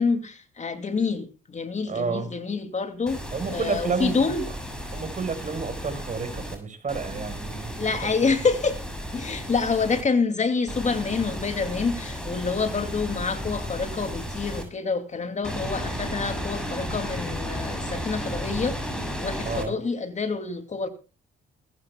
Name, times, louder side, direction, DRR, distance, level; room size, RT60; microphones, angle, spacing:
voice 1, 0.0-3.2 3.5-4.5 7.8-8.8 9.1-20.9, left 4 dB, 35° left, 2.6 m, -27 dB
voice 2, 1.9-2.3 3.3-4.4 4.9-7.9 19.4-19.7, right 5 dB, 40° right, 5.0 m, -30 dB
sound 1, 3.1-6.5 6.9-10.0 10.7-14.6 15.4-19.7, equal, 5° left, 7.4 m, -34 dB
22.0 x 14.5 x 2.3 m
cardioid pair, 90°, 20 cm